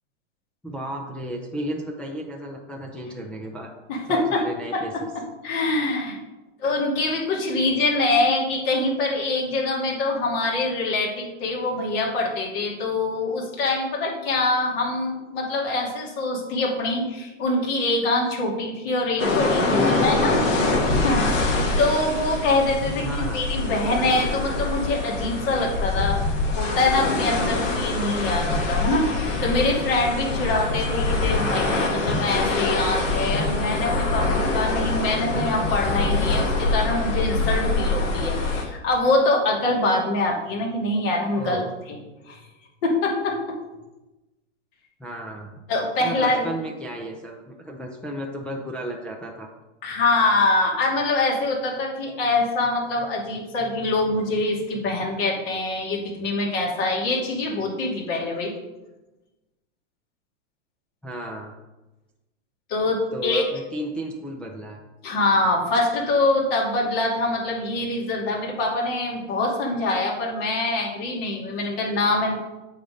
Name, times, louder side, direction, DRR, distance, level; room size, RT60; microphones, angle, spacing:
voice 1, 0.6-3.7 4.1-4.9 19.7-20.1 23.0-23.4 31.4-31.8 41.4-41.7 45.0-45.6 46.0-49.5 61.0-61.5 63.1-64.8, equal, 5° left, -1 dB, 0.4 m, -33 dB
voice 2, 3.9-4.5 4.7-4.8 5.1-6.2 6.6-20.4 20.8-26.2 26.5-29.1 29.4-41.6 41.9-42.0 42.3-42.4 42.8-43.6 45.7-46.5 49.8-58.5 62.7-63.4 65.0-72.4, left 2 dB, 50° left, -2 dB, 2.6 m, -24 dB
sound 1, 19.2-38.6, left 2 dB, 80° left, 2.1 m, -24 dB
8.4 x 4.1 x 5.0 m, 1.0 s
hypercardioid pair, 130°, 37 cm